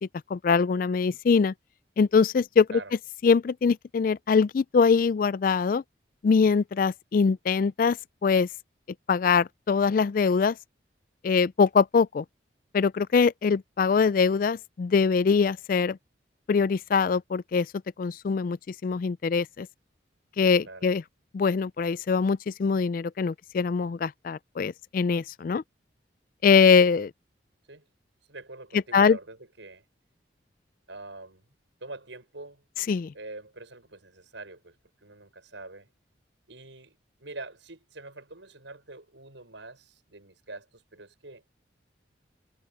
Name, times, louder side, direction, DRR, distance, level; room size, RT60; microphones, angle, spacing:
voice 1, 0.3-1.5 2.0-2.8 3.2-5.8 6.2-8.0 8.2-8.5 9.1-10.6 11.2-12.2 12.7-16.0 16.5-17.7 18.0-18.6 18.8-19.7 20.4-21.0 21.3-25.6 26.4-27.1 28.9-29.2 32.9-33.1, left 5 dB, 45° left, 0.3 m, -23 dB
voice 2, 28.3-29.8 30.9-31.4 31.8-32.6 33.1-34.8 35.0-35.9 36.5-41.4, right 2 dB, 80° right, 6.7 m, -44 dB
head